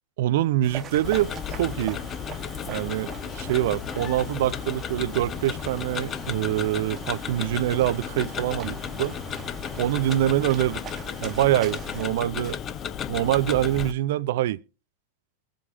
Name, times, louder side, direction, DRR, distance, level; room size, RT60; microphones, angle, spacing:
voice 1, 0.2-1.3 1.6-2.0 2.7-9.2 9.8-10.8 11.2-12.6 13.1-14.6, right 14 dB, 55° right, 0.4 m, -25 dB
sound 1, 0.6-12.0, right 3 dB, 25° right, 1.1 m, -40 dB
Tick-tock, 1.0-13.9, left 8 dB, 30° left, 0.6 m, -34 dB
22.5 x 7.7 x 2.4 m
figure-of-eight pair, 90°, 0 cm